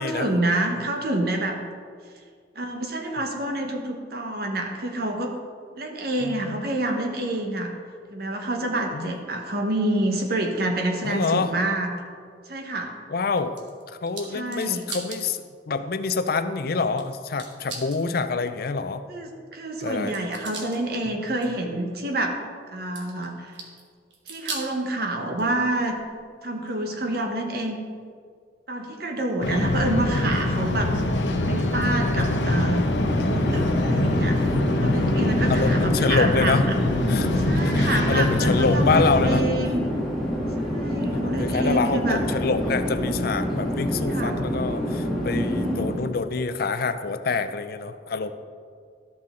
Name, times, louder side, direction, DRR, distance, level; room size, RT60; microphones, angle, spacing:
voice 1, 0.0-1.6 2.6-5.3 5.8-7.7 8.1-11.9 12.5-12.9 14.3-14.8 19.1-22.4 22.7-23.5 24.3-26.0 26.4-27.8 28.7-30.9 31.2-32.9 33.3-34.4 34.8-36.8 37.4-39.9 40.6-42.2 44.1-44.4 45.2-46.0, right 1 dB, 55° right, 3 dB, 1.1 m, -27 dB
voice 2, 6.2-6.7 8.9-9.2 11.0-11.5 13.1-13.6 14.0-19.0 19.8-20.2 35.5-36.7 37.1-39.5 41.1-48.3, left 4 dB, 55° left, 10 dB, 0.5 m, -26 dB
sound 1, 13.3-15.2 15.7-15.8 17.0-17.1 17.4-18.0 19.9-20.8 21.3-21.5 22.9-23.8 24.1-24.8 25.3-26.2 26.7-26.8 27.7-27.8, right 4 dB, 80° right, 1.3 m, -38 dB
sound 2, 29.4-39.4, left 1 dB, 75° left, 0.8 m, -24 dB
Chatter / Fixed-wing aircraft airplane, 32.7-46.1, equal, ahead, 1.4 m, -27 dB
13.0 x 5.8 x 3.7 m, 2.1 s
head